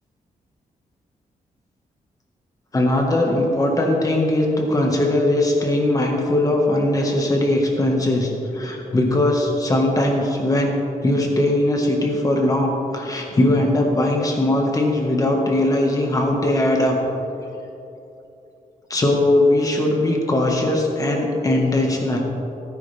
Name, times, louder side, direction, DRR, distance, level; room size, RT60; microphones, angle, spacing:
voice 1, 2.7-17.0 18.9-22.2, left 1 dB, 25° left, 0 dB, 1.7 m, -20 dB
17.5 x 10.0 x 3.5 m, 2.9 s
wide cardioid pair, 175°, 15 cm